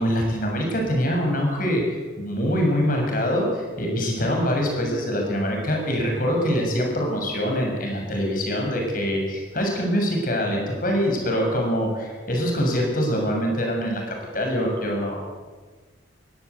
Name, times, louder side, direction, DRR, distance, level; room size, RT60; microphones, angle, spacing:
voice 1, 0.0-15.3, equal, 45° left, 1 dB, 6.9 m, -24 dB
22.5 x 16.0 x 8.4 m, 1.4 s
head